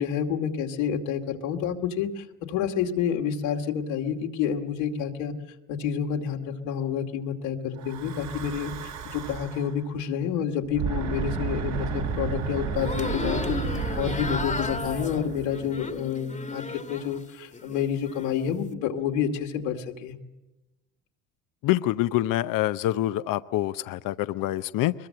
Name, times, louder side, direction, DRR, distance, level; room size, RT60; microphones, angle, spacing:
voice 1, 0.0-5.3 5.7-13.6 14.0-20.2, left 8 dB, 85° left, 2 dB, 2.5 m, -29 dB
Breathing / Wind, 7.8-9.7 10.6-16.0, right 6 dB, 85° right, 5.6 m, -32 dB
sound 1, 12.8-17.2 17.5-18.3, left 4 dB, 20° left, 1.4 m, -34 dB
voice 2, 21.6-24.9, left 15 dB, 60° left, 13 dB, 0.7 m, -26 dB
22.0 x 22.0 x 7.7 m, 1.1 s
supercardioid pair, 75°, 37 cm